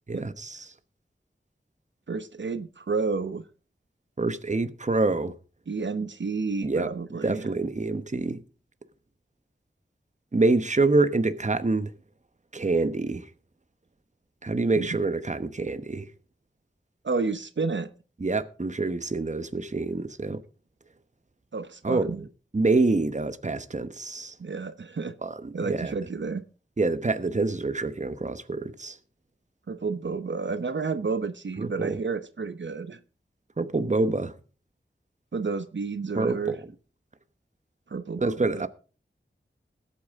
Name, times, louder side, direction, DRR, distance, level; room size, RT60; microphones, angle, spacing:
voice 1, 0.1-0.7 4.2-5.3 6.6-6.9 7.2-8.4 10.3-11.9 12.5-13.3 14.4-16.1 18.2-20.4 21.8-22.2 22.5-24.4 25.2-25.9 26.8-29.0 31.6-32.0 33.6-34.4 36.2-36.6 38.2-38.7, right 3 dB, 40° right, 1.0 m, -26 dB
voice 2, 2.1-3.4 5.7-7.4 14.8-14.9 17.0-17.9 21.5-22.2 24.4-25.1 25.5-26.4 29.7-33.0 35.3-36.6 37.9-38.7, right 4 dB, 75° right, 0.9 m, -31 dB
20.0 x 8.6 x 3.6 m
wide cardioid pair, 70°, 19 cm